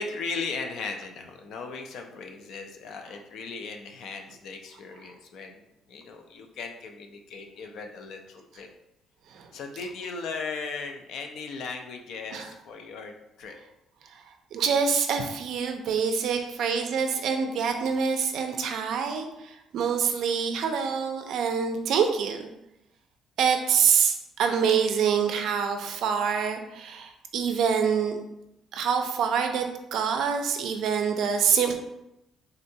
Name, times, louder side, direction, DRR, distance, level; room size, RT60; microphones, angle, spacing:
voice 1, 0.0-8.7 9.5-13.6 16.3-16.5, left 4 dB, 60° left, 4 dB, 0.4 m, -37 dB
voice 2, 14.5-22.5 23.4-28.2 28.7-29.6 29.9-31.7, right 6 dB, 60° right, 5 dB, 0.4 m, -26 dB
3.6 x 2.2 x 2.7 m, 0.87 s
cardioid pair, 165°, 0 cm